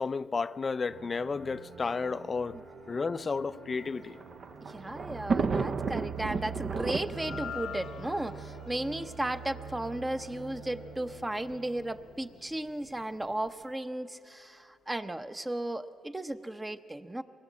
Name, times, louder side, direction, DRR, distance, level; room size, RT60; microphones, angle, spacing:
voice 1, 0.0-2.6 2.9-4.2, left 4 dB, 35° left, 0.4 m, -32 dB
sound 1, 0.9-12.8, right 6 dB, 85° right, 2.5 m, -45 dB
Thunder, 3.8-9.2 10.0-10.1 10.3-10.4 11.5-11.8, right 4 dB, 45° right, 0.7 m, -34 dB
voice 2, 4.7-17.2, right 1 dB, 15° right, 0.8 m, -35 dB
sound 2, 7.0-13.4, left 9 dB, 70° left, 0.8 m, -47 dB
23.5 x 20.0 x 7.5 m
cardioid pair, 90°, 0 cm